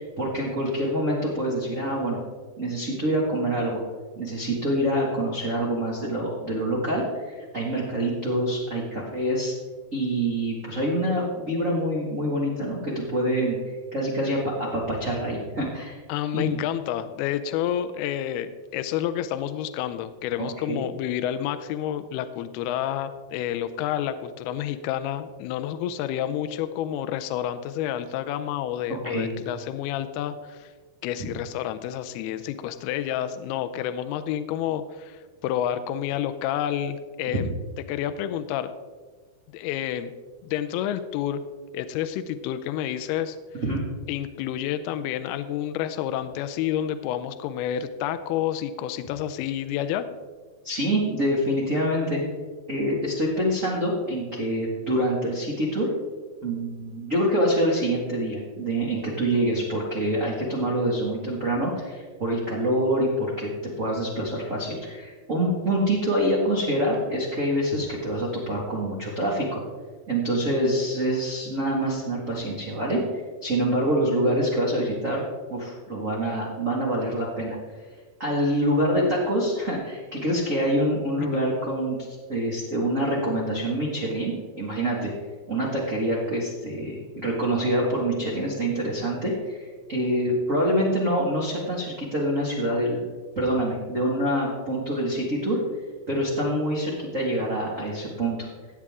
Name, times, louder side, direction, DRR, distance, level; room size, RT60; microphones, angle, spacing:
voice 1, 0.0-2.2 2.6-3.8 4.2-9.5 9.9-13.6 13.9-16.0 16.3-16.6 20.4-20.8 29.0-29.3 37.3-37.4 43.6-43.8 50.6-52.2 52.7-55.9 56.4-63.5 63.8-69.6 70.1-73.1 73.4-75.2 75.5-77.6 78.2-85.1 85.5-93.0 93.3-95.6 96.1-98.5, right 1 dB, 40° right, -4 dB, 1.1 m, -26 dB
voice 2, 16.1-30.7 31.0-37.5 37.9-38.7 39.5-40.1 40.4-41.4 41.7-43.4 44.1-50.1 81.2-81.4, left 10 dB, 85° left, 10 dB, 2.5 m, -29 dB
16.0 x 8.8 x 3.6 m, 1.4 s
omnidirectional pair, 4.6 m